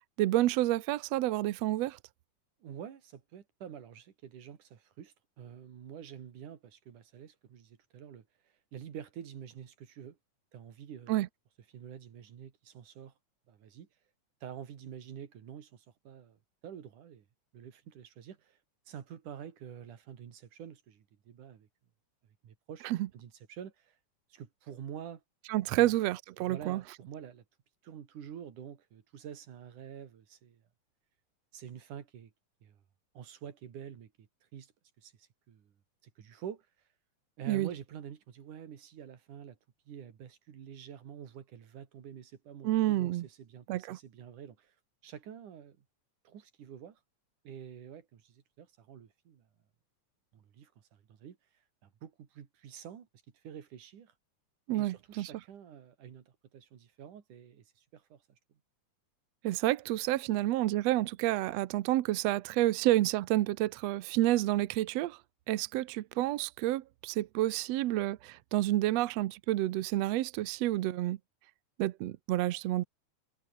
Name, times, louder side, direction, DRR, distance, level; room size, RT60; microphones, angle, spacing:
voice 1, 0.2-2.0 11.1-11.3 22.8-23.1 25.5-26.8 37.5-37.7 42.6-43.3 43.7-44.0 54.7-55.3 59.4-65.2 65.5-71.2 71.8-72.8, right 15 dB, 70° right, 1.7 m, -29 dB
voice 2, 2.6-8.3 8.7-10.2 10.5-11.1 11.7-13.1 13.5-13.9 14.4-17.3 17.5-18.6 18.9-21.7 22.4-22.9 23.1-24.0 24.3-25.2 25.7-25.9 26.4-27.4 27.8-30.6 31.5-32.3 32.6-32.8 33.2-34.7 35.0-35.7 36.0-36.7 37.4-39.6 39.9-44.7 45.0-45.8 46.3-47.0 47.4-49.5 50.3-51.4 51.8-53.1 53.4-54.1 54.7-58.4, right 8 dB, 85° right, 3.8 m, -48 dB
omnidirectional pair, 3.5 m